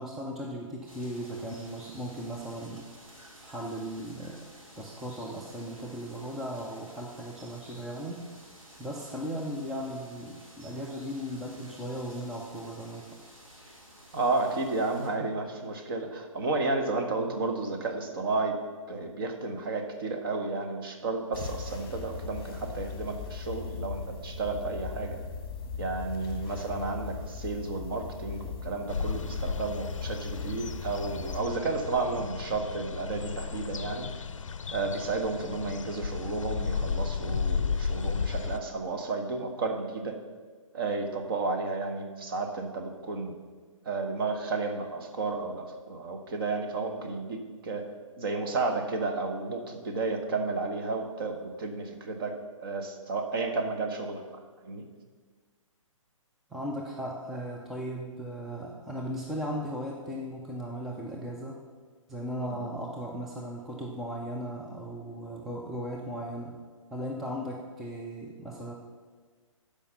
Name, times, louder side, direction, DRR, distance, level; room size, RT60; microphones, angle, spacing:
voice 1, 0.0-2.9 3.3-4.5 4.8-8.3 8.8-13.1 56.5-61.6 62.1-66.5 66.9-68.7, equal, ahead, -2 dB, 0.3 m, -37 dB
sound 1, 0.9-15.1, equal, 80° right, 3.2 m, -52 dB
voice 2, 14.1-18.6 18.9-25.2 25.8-34.2 34.7-40.2 40.7-43.3 43.8-47.9 48.2-54.2 54.6-54.8 62.4-62.7, right 3 dB, 40° right, 5 dB, 1.2 m, -32 dB
sound 2, 21.3-31.4, left 5 dB, 20° left, 1.2 m, -39 dB
sound 3, 28.9-38.6, left 5 dB, 65° left, 0.5 m, -34 dB
12.0 x 5.1 x 5.6 m, 1.5 s
figure-of-eight pair, 130°, 17 cm